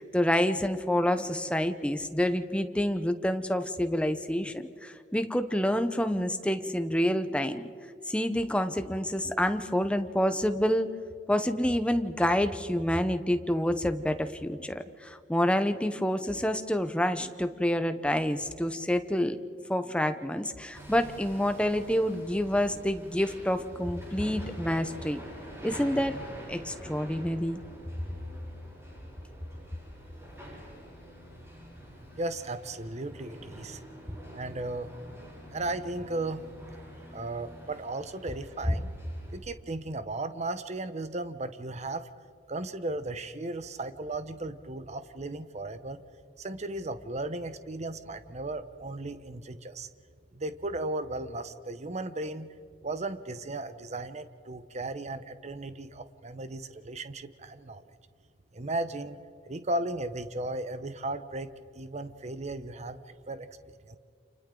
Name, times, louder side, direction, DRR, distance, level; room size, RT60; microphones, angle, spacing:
voice 1, 0.0-7.7 8.1-10.9 11.3-19.4 19.7-25.2 25.6-26.2 26.5-27.6 38.7-38.8, equal, 5° left, 9 dB, 0.9 m, -28 dB
Hammer, 20.7-39.4, equal, 15° right, 7.8 m, -46 dB
voice 2, 32.2-33.8 34.3-34.9 35.5-36.5 37.1-38.9 39.3-42.1 42.5-46.0 46.4-49.9 50.3-52.6 52.8-57.8 58.5-63.0 63.3-63.5 63.9-64.0, right 2 dB, 40° right, 11 dB, 0.9 m, -35 dB
29.0 x 28.5 x 3.9 m, 2.3 s
head